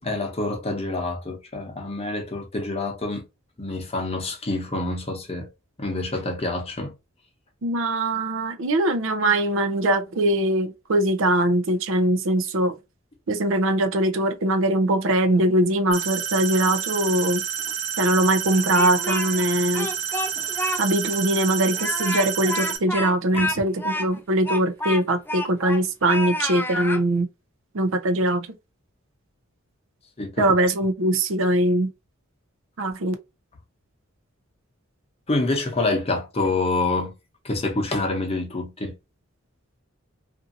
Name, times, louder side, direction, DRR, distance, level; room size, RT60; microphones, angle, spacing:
voice 1, 0.0-3.2 3.6-5.5 5.8-6.9 20.4-20.5 23.3-23.5 30.2-30.5 35.3-37.1 37.4-39.0, left 2 dB, 30° left, 0.8 m, -27 dB
voice 2, 7.6-12.7 13.3-17.4 18.0-19.9 20.8-27.3 27.7-28.5 30.4-31.9 32.8-33.1, right 1 dB, 65° right, 0.6 m, -22 dB
sound 1, 15.9-22.8, right 8 dB, 85° right, 0.9 m, -29 dB
Speech, 18.5-19.4 19.7-20.8 21.1-21.2 21.7-25.8 26.1-27.0, left 1 dB, 10° left, 0.4 m, -29 dB
2.6 x 2.5 x 2.6 m
head